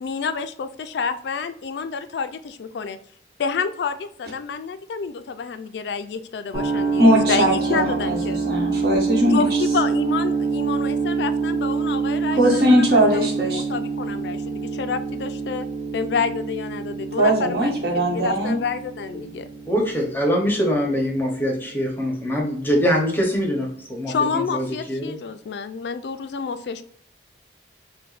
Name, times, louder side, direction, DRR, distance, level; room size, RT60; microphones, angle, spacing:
voice 1, 0.0-3.0 3.4-8.4 9.3-15.7 15.9-19.5 24.1-26.8, left 5 dB, 70° left, 10 dB, 0.3 m, -29 dB
sound 1, 6.5-22.5, right 5 dB, 25° right, 1.3 m, -26 dB
voice 2, 7.0-9.4 12.3-13.6 17.2-18.6, equal, 60° right, -2 dB, 1.2 m, -19 dB
voice 3, 19.7-25.2, equal, 10° left, 0 dB, 0.7 m, -23 dB
5.9 x 2.2 x 2.4 m, 0.65 s
head